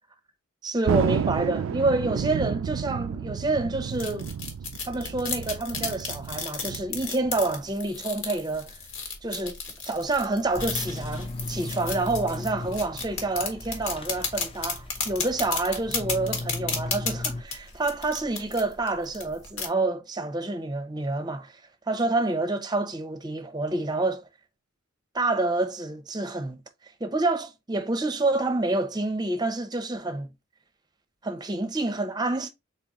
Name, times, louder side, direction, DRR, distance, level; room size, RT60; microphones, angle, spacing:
voice 1, 0.6-4.3 4.9-8.8 9.2-9.6 9.9-21.6 21.9-24.3 25.1-26.6 27.0-30.3 31.2-32.5, right 2 dB, 20° right, 0.7 m, -28 dB
Thunder, 0.9-7.7, right 7 dB, 70° right, 0.3 m, -31 dB
sound 1, 3.7-19.7, left 5 dB, 75° left, 1.6 m, -34 dB
sound 2, 10.6-17.4, left 2 dB, 25° left, 0.7 m, -37 dB
4.2 x 3.9 x 3.0 m
head